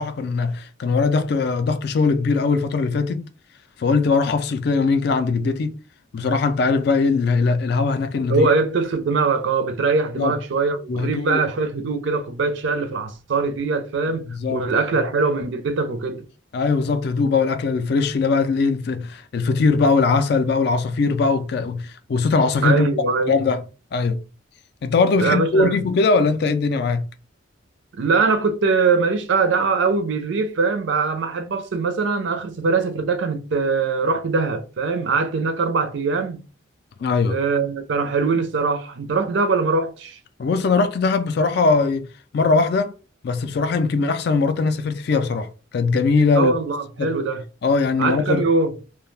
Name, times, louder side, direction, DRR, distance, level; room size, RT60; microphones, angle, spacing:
voice 1, 0.0-3.3 3.8-5.8 6.1-8.4 10.2-10.3 10.9-11.4 14.3-14.7 16.5-22.9 23.3-23.6 23.9-24.2 24.8-27.0 37.0-37.4 40.4-42.1 42.3-42.9 43.2-46.5 47.0-47.1 47.6-48.5, left 4 dB, 55° left, 0.3 m, -20 dB
voice 2, 8.3-16.3 22.6-23.4 25.1-25.8 27.9-36.4 37.3-40.2 46.3-47.4 48.0-48.8, right 4 dB, 65° right, 0.4 m, -22 dB
2.2 x 2.2 x 3.1 m
head